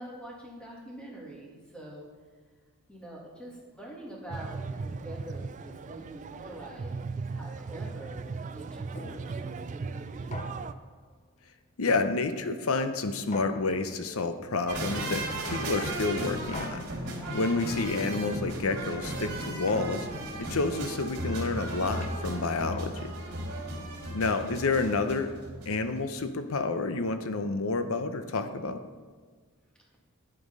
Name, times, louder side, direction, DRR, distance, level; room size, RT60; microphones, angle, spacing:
voice 1, 0.0-2.1 2.9-10.4 17.1-17.4 23.5-24.1, right 1 dB, 5° left, -4 dB, 2.2 m, -45 dB
sound 1, 4.3-10.7, right 4 dB, 35° right, 0.3 m, -37 dB
sound 2, 9.0-9.5 10.3-11.0 11.9-12.6 13.3-14.1 15.0-15.7 16.5-17.3 18.1-18.8 19.7-20.4 21.3-23.3, left 2 dB, 30° left, 0.5 m, -43 dB
voice 2, 11.8-16.9 17.3-20.1 20.4-23.1 24.1-25.3 25.7-28.8, left 3 dB, 70° left, 9 dB, 0.7 m, -29 dB
sound 3, 14.7-25.9 26.2-26.3, right 1 dB, 50° right, 2.8 m, -35 dB
9.3 x 8.2 x 5.3 m, 1.6 s
head